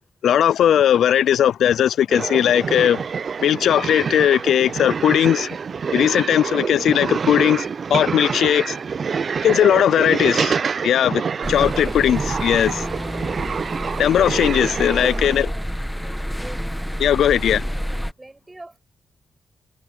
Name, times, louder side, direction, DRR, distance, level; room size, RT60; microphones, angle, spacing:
voice 1, 0.2-3.0 3.4-5.6 5.9-8.8 9.4-10.6 10.8-12.9 14.0-15.5 17.0-17.7, left 10 dB, 80° left, 0.5 m, -18 dB
sound 1, 2.1-15.4, right 6 dB, 55° right, 0.6 m, -26 dB
sound 2, 11.4-18.1, equal, ahead, 1.6 m, -28 dB
sound 3, 11.4-12.8, right 4 dB, 40° right, 1.3 m, -33 dB
voice 2, 15.0-15.7 16.4-16.6 18.2-18.8, right 2 dB, 20° right, 6.6 m, -42 dB
supercardioid pair, 55°, 0 cm